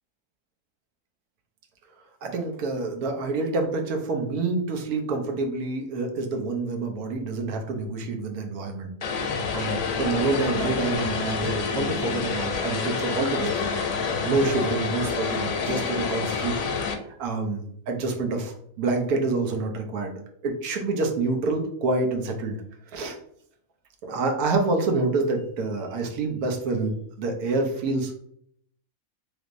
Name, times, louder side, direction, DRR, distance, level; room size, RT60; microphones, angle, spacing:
voice 1, 2.2-8.9 9.5-13.7 14.2-22.6 22.9-23.2 24.0-28.1, right 3 dB, 80° right, 3 dB, 1.2 m, -27 dB
Vehicle, 9.0-16.9, left 5 dB, 65° left, 0.8 m, -28 dB
3.3 x 3.1 x 2.5 m, 0.69 s
omnidirectional pair, 1.5 m